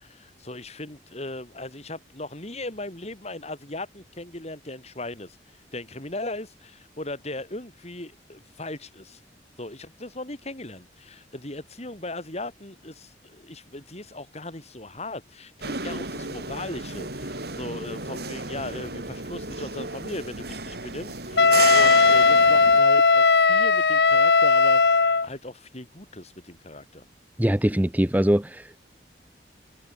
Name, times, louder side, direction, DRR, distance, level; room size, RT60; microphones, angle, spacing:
voice 1, 0.0-9.2 9.6-27.0, left 2 dB, 35° left, 4.2 m, -38 dB
sound 1, 15.6-22.8, right 4 dB, 60° right, 5.7 m, -33 dB
Wind instrument woodwind instrument, 21.4-25.3, left 4 dB, 65° left, 1.2 m, -17 dB
voice 2, 27.4-28.8, equal, 10° right, 0.8 m, -22 dB
head